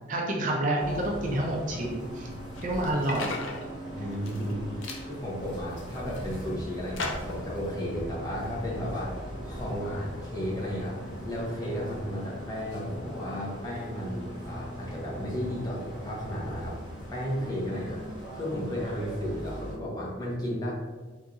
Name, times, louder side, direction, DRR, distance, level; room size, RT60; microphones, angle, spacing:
voice 1, 0.1-2.3 2.6-3.4, right 1 dB, 40° right, -1 dB, 0.5 m, -28 dB
sound 1, 0.8-19.7, equal, 60° left, 1.5 m, -40 dB
sound 2, 2.5-3.6 4.1-4.5 4.8-5.0 5.7-6.4 7.0-7.4, left 3 dB, 75° left, 0.6 m, -37 dB
voice 2, 3.9-9.2 9.5-11.0 11.2-16.8 17.1-20.7, equal, 20° left, -5 dB, 0.7 m, -34 dB
3.6 x 2.9 x 2.5 m, 1.4 s
head